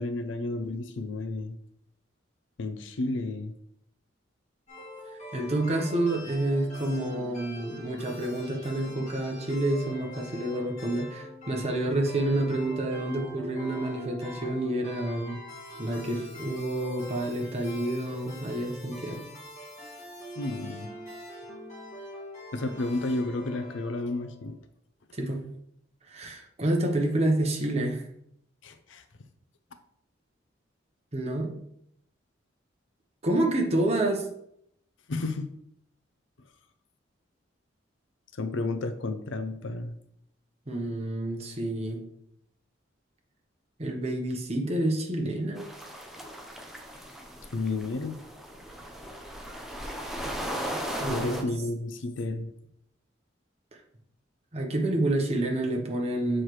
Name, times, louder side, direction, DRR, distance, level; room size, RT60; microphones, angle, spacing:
voice 1, 0.0-1.6 2.6-3.5 20.4-20.9 22.5-24.6 28.6-29.0 35.1-35.5 38.4-39.9 47.5-48.2 51.1-52.5, left 2 dB, 80° left, 9 dB, 0.6 m, -31 dB
sound 1, 4.7-24.6, left 1 dB, 40° left, 2.3 m, -44 dB
voice 2, 5.3-15.4 15.8-19.2 25.2-25.4 26.1-28.0 31.1-31.5 33.2-34.3 40.7-42.0 43.8-45.7 51.0-51.5 54.5-56.4, right 1 dB, 35° right, 2 dB, 1.0 m, -28 dB
sound 2, 45.6-51.4, equal, ahead, 0.6 m, -37 dB
7.4 x 4.5 x 3.2 m, 0.72 s
head